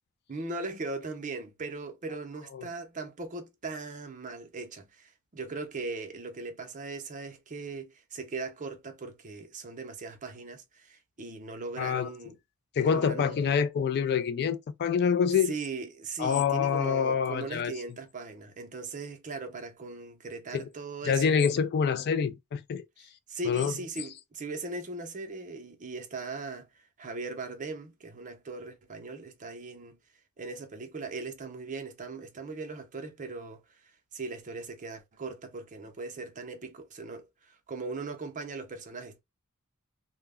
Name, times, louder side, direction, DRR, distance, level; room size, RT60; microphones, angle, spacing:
voice 1, 0.3-12.4 12.8-13.4 15.4-21.4 23.3-30.0 30.4-33.8 34.1-39.2, right 3 dB, 35° right, 0.6 m, -39 dB
voice 2, 11.8-12.1 12.8-15.5 16.2-17.7 20.5-20.7 21.1-22.8 23.5-23.7, left 7 dB, 50° left, 0.3 m, -26 dB
2.2 x 2.0 x 3.4 m
head